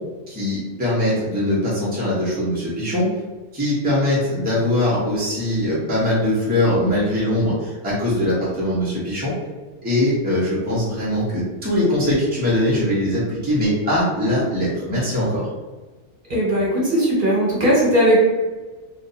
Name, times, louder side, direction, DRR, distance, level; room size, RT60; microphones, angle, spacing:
voice 1, 0.3-3.1 3.5-9.3 9.8-15.5, left 1 dB, 10° right, -8 dB, 0.9 m, -21 dB
voice 2, 16.3-18.2, right 1 dB, 45° right, -6 dB, 1.4 m, -18 dB
2.6 x 2.5 x 4.0 m, 1.3 s
omnidirectional pair, 1.2 m